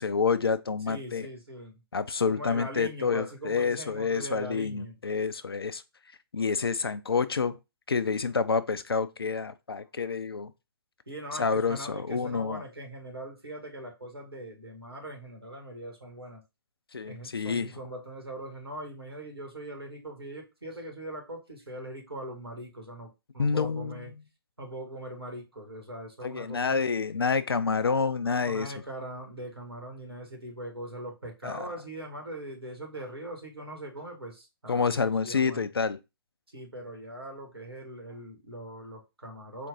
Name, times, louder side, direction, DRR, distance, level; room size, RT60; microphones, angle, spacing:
voice 1, 0.0-1.3 1.9-5.8 6.3-7.6 7.9-10.5 11.4-12.6 16.9-17.7 23.4-24.0 26.2-28.7 31.4-31.6 34.7-36.0, left 5 dB, 80° left, 0.5 m, -28 dB
voice 2, 0.8-1.8 2.3-5.0 11.1-16.4 17.1-24.1 24.6-26.8 28.3-35.7 36.5-39.7, right 1 dB, 90° right, 1.8 m, -41 dB
4.4 x 2.5 x 3.6 m
figure-of-eight pair, 125°, 13 cm